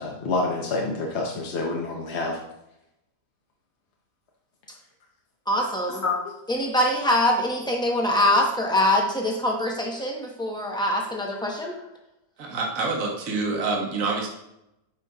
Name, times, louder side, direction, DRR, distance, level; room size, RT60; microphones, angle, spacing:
voice 1, 0.0-2.4 6.0-6.3, left 3 dB, 50° left, 0 dB, 0.9 m, -27 dB
voice 2, 5.5-6.0 6.5-11.7, left 1 dB, 5° left, 0 dB, 0.4 m, -23 dB
voice 3, 12.4-14.3, right 3 dB, 55° right, 1 dB, 1.4 m, -27 dB
9.0 x 5.0 x 2.3 m, 0.87 s
omnidirectional pair, 1.8 m